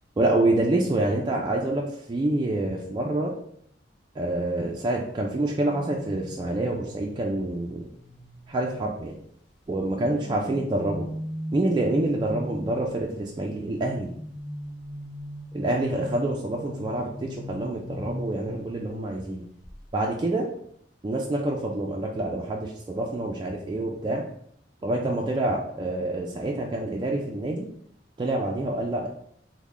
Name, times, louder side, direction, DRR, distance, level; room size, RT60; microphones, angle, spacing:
voice 1, 0.2-3.3 4.1-7.9 8.5-9.2 9.7-11.1 11.5-14.1 15.5-19.5 19.9-20.5 21.0-24.2 24.8-27.7 28.2-29.1, right 2 dB, 25° right, -1 dB, 0.3 m, -27 dB
sound 1, 5.6-9.2 9.8-13.1 14.1-19.3 19.6-19.9, equal, 70° left, 0.8 m, -39 dB
3.1 x 2.1 x 3.5 m, 0.68 s
head